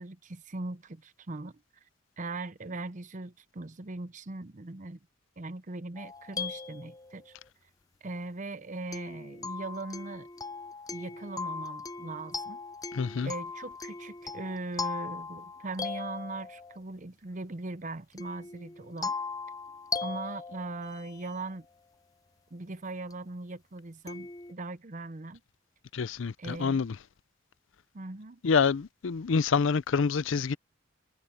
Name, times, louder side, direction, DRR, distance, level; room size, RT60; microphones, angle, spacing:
voice 1, 0.0-1.6 2.2-5.0 5.4-7.3 8.0-10.3 10.9-12.6 13.2-19.1 20.0-21.7 22.5-25.4 26.4-26.9 27.9-28.4, right 2 dB, 40° right, 0.8 m, -40 dB
sound 1, 6.0-7.4 8.9-16.8 18.2-21.5 23.1-23.2 24.1-24.5, left 4 dB, 20° left, 0.6 m, -39 dB
voice 2, 12.9-13.3 25.9-27.0 28.4-30.6, left 5 dB, 70° left, 0.5 m, -27 dB
head